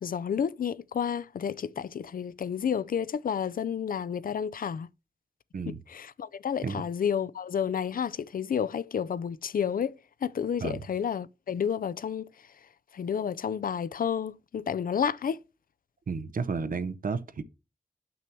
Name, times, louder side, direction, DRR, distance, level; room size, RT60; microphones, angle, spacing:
voice 1, 0.0-4.9 5.9-12.3 12.9-15.4, left 7 dB, 85° left, 0.4 m, -30 dB
voice 2, 16.1-17.4, right 5 dB, 80° right, 0.7 m, -32 dB
6.9 x 6.1 x 4.5 m
wide cardioid pair, 55°, 14 cm